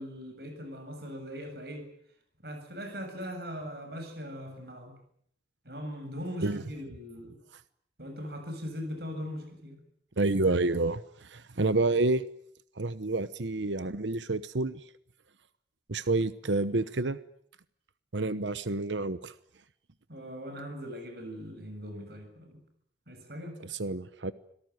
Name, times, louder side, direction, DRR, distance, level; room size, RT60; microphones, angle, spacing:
voice 1, 0.0-1.9 2.4-5.0 5.6-7.4 8.0-9.8 20.1-22.6 23.1-23.6, equal, 60° right, 6 dB, 7.2 m, -40 dB
voice 2, 10.2-12.2 12.8-14.8 15.9-17.2 18.1-19.3 23.8-24.3, right 2 dB, 85° right, 14 dB, 1.0 m, -29 dB
26.0 x 18.0 x 9.5 m, 0.68 s
head